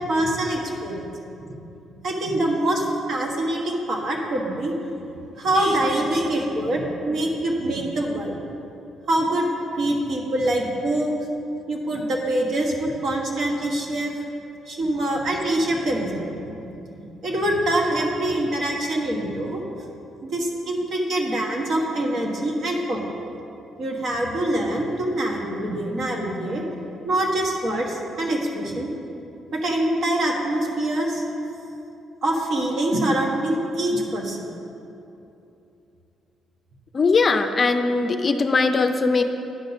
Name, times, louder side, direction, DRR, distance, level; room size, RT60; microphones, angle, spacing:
voice 1, 0.1-1.0 1.4-1.5 2.0-4.7 5.4-8.4 9.1-9.5 9.8-11.1 11.7-14.1 14.7-16.7 17.2-19.6 20.3-23.1 23.8-26.6 27.0-28.9 29.5-31.2 32.2-34.5, right 1 dB, 60° right, 0 dB, 1.3 m, -24 dB
voice 2, 36.9-39.2, left 4 dB, 35° left, 7 dB, 0.4 m, -20 dB
10.0 x 4.1 x 5.9 m, 2.8 s
cardioid pair, 90°, 0 cm